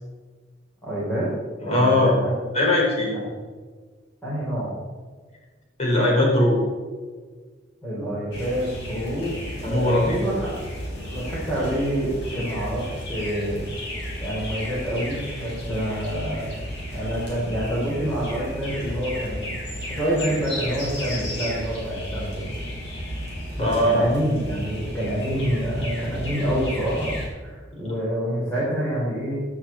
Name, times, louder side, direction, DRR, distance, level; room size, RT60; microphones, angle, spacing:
voice 1, 0.8-1.3 1.6-2.4 3.1-3.2 4.2-4.7 7.8-10.5 11.0-13.6 14.2-16.5 16.9-19.5 19.9-22.5 23.6-29.3, equal, 10° left, -8 dB, 3.9 m, -27 dB
voice 2, 1.6-2.1 2.5-3.1 5.8-6.6 9.6-10.3 23.6-24.0 27.7-27.9, left 1 dB, 35° left, -3 dB, 4.6 m, -20 dB
sound 1, 8.3-27.3, equal, 65° left, 4.6 m, -33 dB
15.5 x 10.0 x 4.4 m, 1.5 s
head